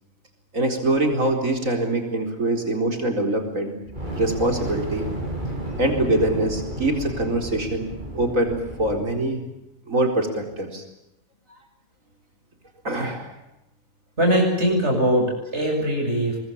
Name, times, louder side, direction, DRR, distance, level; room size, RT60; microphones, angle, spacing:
voice 1, 0.5-3.7 4.2-5.0 5.8-9.4 9.9-10.8 12.8-13.3, right 1 dB, 85° right, 4 dB, 4.8 m, -24 dB
Fire, 3.8-9.1, right 1 dB, 35° right, 7.4 m, -32 dB
voice 2, 14.2-16.4, equal, 60° right, 1 dB, 8.2 m, -21 dB
24.5 x 22.0 x 8.6 m, 0.89 s
omnidirectional pair, 1.4 m